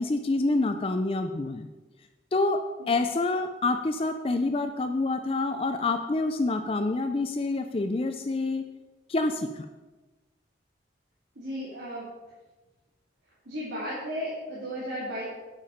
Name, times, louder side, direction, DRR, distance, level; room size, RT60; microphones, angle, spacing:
voice 1, 0.0-1.7 2.3-2.6 2.9-8.6 9.1-9.7, left 2 dB, 30° left, 7 dB, 0.4 m, -27 dB
voice 2, 2.8-3.1 11.4-12.0 13.5-15.2, equal, 75° right, -8 dB, 2.5 m, -35 dB
8.3 x 7.5 x 5.0 m, 1.2 s
head